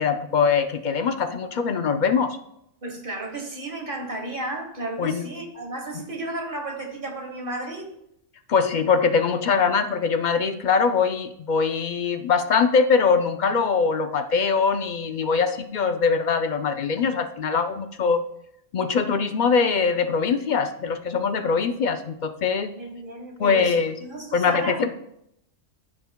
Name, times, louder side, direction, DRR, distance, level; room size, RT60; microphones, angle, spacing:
voice 1, 0.0-2.4 5.0-5.3 8.5-18.2 18.7-22.7 23.4-24.0 24.3-24.9, left 5 dB, 55° left, 8 dB, 0.5 m, -22 dB
voice 2, 2.8-7.9 22.8-23.7 24.0-24.9, right 2 dB, 50° right, 2 dB, 1.5 m, -33 dB
14.0 x 5.7 x 2.2 m, 0.77 s
omnidirectional pair, 1.2 m